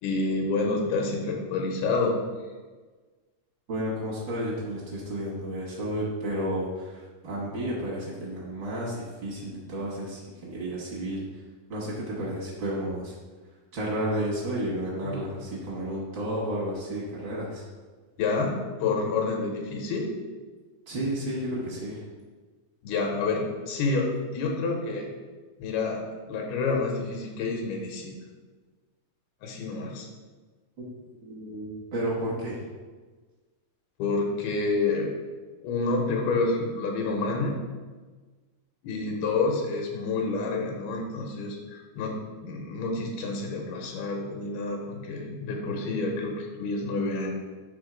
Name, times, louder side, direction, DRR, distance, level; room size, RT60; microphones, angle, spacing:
voice 1, 0.0-2.2 15.0-15.2 18.2-20.1 22.8-24.1 24.3-25.1 25.6-26.0 26.3-28.2 29.4-30.1 34.0-35.1 35.6-37.6 38.8-47.3, left 3 dB, 85° left, 0 dB, 2.8 m, -28 dB
voice 2, 3.7-11.4 11.7-13.1 13.7-17.7 20.9-22.0 30.8-30.9 31.2-32.6, right 1 dB, 65° right, -6 dB, 1.1 m, -32 dB
6.1 x 3.6 x 5.0 m, 1.4 s
omnidirectional pair, 4.3 m